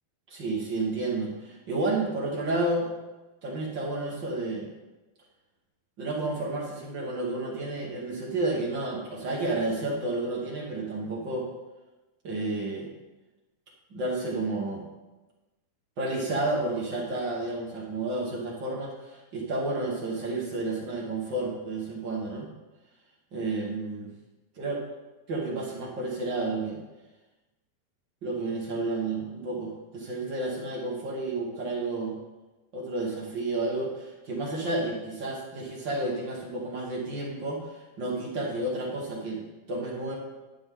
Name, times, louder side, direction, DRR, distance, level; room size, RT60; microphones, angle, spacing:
voice 1, 0.3-2.9 3.4-4.7 6.0-11.5 12.2-12.9 13.9-14.8 16.0-22.5 23.3-24.1 24.6-24.8 25.3-26.8 28.2-32.2 32.7-40.1, right 2 dB, 45° right, -3 dB, 1.7 m, -31 dB
11.5 x 9.3 x 3.8 m, 1.1 s
omnidirectional pair, 4.3 m